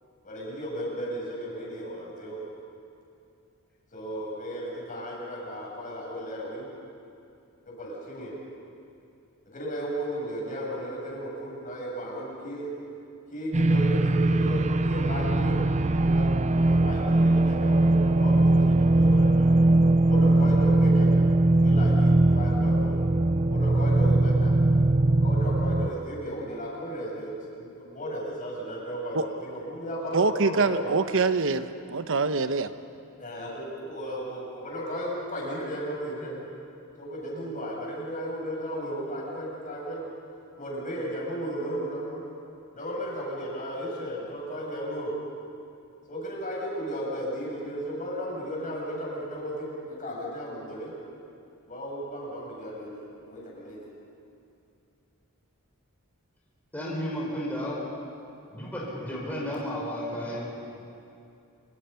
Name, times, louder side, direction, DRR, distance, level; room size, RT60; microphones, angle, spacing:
voice 1, 0.2-2.4 3.9-6.7 7.7-8.4 9.5-12.7 13.3-15.5 15.8-19.5 20.0-21.1 21.6-22.9 23.5-24.5 25.1-31.0 33.2-36.4 37.0-40.1 40.6-42.2 42.7-45.1 46.1-50.9 51.7-53.8, equal, 40° left, -4 dB, 7.8 m, -35 dB
sound 1, 13.5-25.9, right 2 dB, 30° right, 0.6 m, -21 dB
voice 2, 30.1-32.7, right 4 dB, 65° right, 10 dB, 1.0 m, -25 dB
voice 3, 56.7-57.8 58.5-60.5, equal, 10° left, -5 dB, 5.8 m, -32 dB
26.5 x 24.0 x 5.8 m, 2.6 s
head